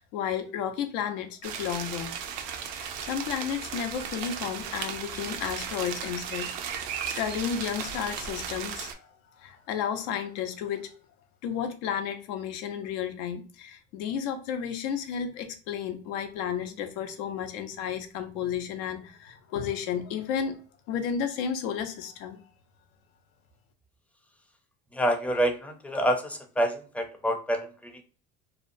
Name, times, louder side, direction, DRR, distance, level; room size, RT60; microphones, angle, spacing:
voice 1, 0.0-2.1 2.8-6.5 7.1-9.1 9.4-10.9 11.4-20.6 20.9-22.4, left 8 dB, 85° left, 0.6 m, -32 dB
sound 1, 1.4-8.9, right 7 dB, 85° right, 0.5 m, -36 dB
voice 2, 24.9-28.0, equal, 5° left, 0.5 m, -27 dB
2.7 x 2.1 x 2.5 m
cardioid pair, 120°, 21 cm